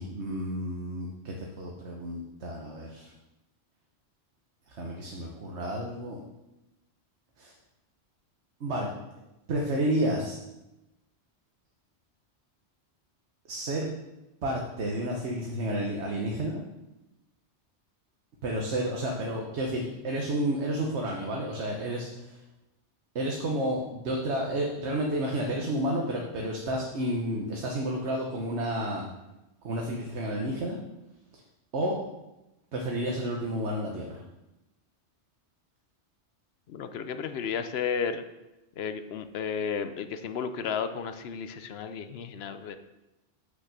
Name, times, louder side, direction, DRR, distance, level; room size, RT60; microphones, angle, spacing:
voice 1, 0.0-3.1 4.7-6.2 7.4-7.5 8.6-8.9 9.5-10.4 13.5-13.9 14.4-16.6 18.4-22.4 23.1-29.0 29.6-30.8 31.7-32.0 32.7-34.2, right 1 dB, 75° right, -1 dB, 1.3 m, -31 dB
voice 2, 36.7-38.2 38.8-42.8, left 6 dB, 65° left, 10 dB, 0.9 m, -33 dB
6.1 x 5.9 x 6.6 m, 0.97 s
omnidirectional pair, 1.2 m